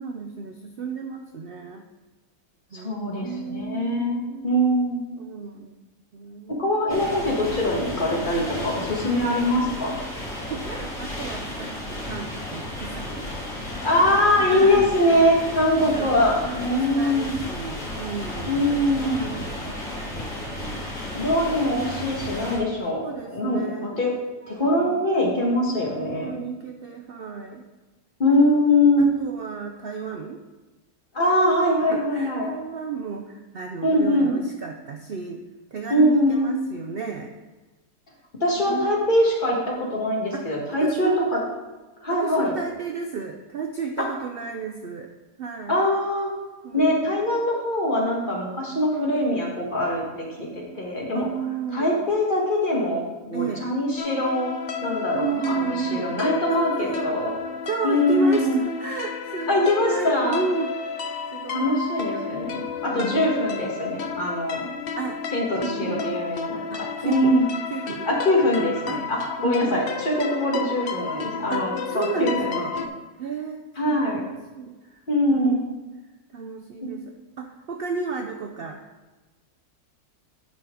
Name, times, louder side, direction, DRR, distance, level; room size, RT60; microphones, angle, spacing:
voice 1, 0.0-1.9 2.7-4.5 5.2-5.8 6.1-6.6 10.4-13.3 14.5-15.1 15.7-18.9 19.2-20.9 21.6-21.7 22.9-24.0 24.5-25.0 25.9-27.6 29.0-30.4 31.9-35.4 35.7-37.3 38.7-39.0 40.3-41.3 42.1-45.1 45.4-45.8 46.6-47.1 51.1-52.0 53.3-53.7 55.1-56.1 56.5-57.2 57.7-60.7 61.3-61.8 62.1-62.3 62.9-63.3 65.0-65.2 65.6-66.0 66.7-67.4 67.7-68.1 68.9-69.0 69.4-69.9 71.5-72.8 73.2-75.0 75.3-75.8 76.3-78.8, right 5 dB, 75° right, 4 dB, 0.5 m, -33 dB
voice 2, 2.7-5.0 6.5-10.0 13.8-17.3 18.4-19.2 21.1-24.1 24.5-26.4 28.2-29.1 31.1-32.5 33.8-34.3 35.9-36.5 38.4-41.4 42.0-42.6 44.0-44.1 45.7-46.3 46.7-51.3 51.7-54.5 54.8-57.3 57.8-58.6 59.5-60.4 61.5-64.7 65.3-67.5 68.0-72.8 73.8-74.2 75.1-75.6, left 1 dB, 35° left, -2 dB, 1.7 m, -23 dB
sound 1, 6.9-22.6, left 1 dB, 80° left, 2.8 m, -33 dB
sound 2, 54.0-72.9, left 6 dB, 65° left, 0.5 m, -32 dB
10.0 x 5.7 x 3.7 m, 1.2 s
omnidirectional pair, 1.7 m